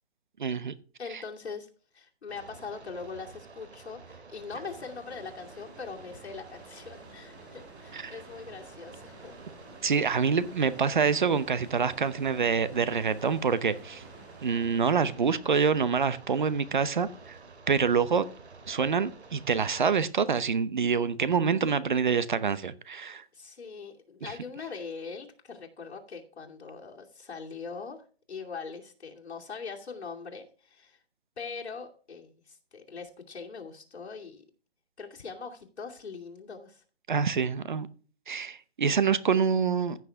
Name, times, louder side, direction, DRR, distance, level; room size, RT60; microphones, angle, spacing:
voice 1, 0.4-0.7 7.9-8.2 9.8-14.0 14.4-17.4 17.7-18.3 18.7-23.2 24.2-24.3 37.1-37.9 38.3-40.0, right 6 dB, 45° right, 0.8 m, -26 dB
voice 2, 1.0-1.7 1.9-9.3 23.3-31.0 31.4-34.4 35.0-36.8, left 5 dB, 85° left, 2.5 m, -42 dB
sound 1, 2.3-19.8, right 4 dB, 90° right, 2.8 m, -51 dB
sound 2, 4.5-15.1, right 2 dB, 20° right, 2.4 m, -51 dB
15.5 x 6.0 x 3.5 m
hypercardioid pair, 180°, 32 cm